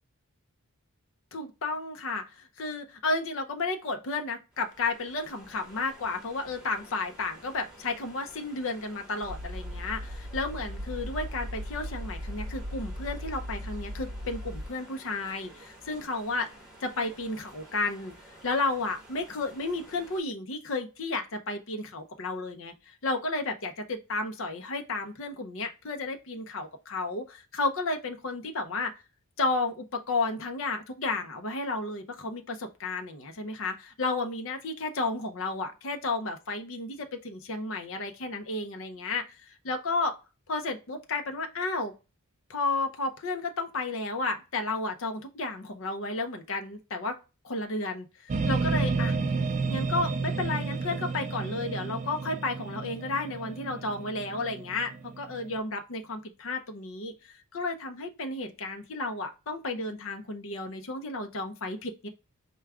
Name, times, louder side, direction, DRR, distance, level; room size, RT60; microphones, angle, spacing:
voice 1, 1.3-16.5 16.8-18.1 18.4-28.9 29.4-40.2 40.5-41.9 42.5-47.2 47.4-49.2 49.7-62.1, left 3 dB, 60° left, 5 dB, 0.6 m, -32 dB
sound 1, 4.5-20.2, right 1 dB, 5° right, 1.3 m, -52 dB
sound 2, 9.2-14.7, equal, 70° right, 0.6 m, -37 dB
sound 3, 48.3-55.6, right 4 dB, 30° right, 0.3 m, -31 dB
4.6 x 2.3 x 3.4 m, 0.29 s
head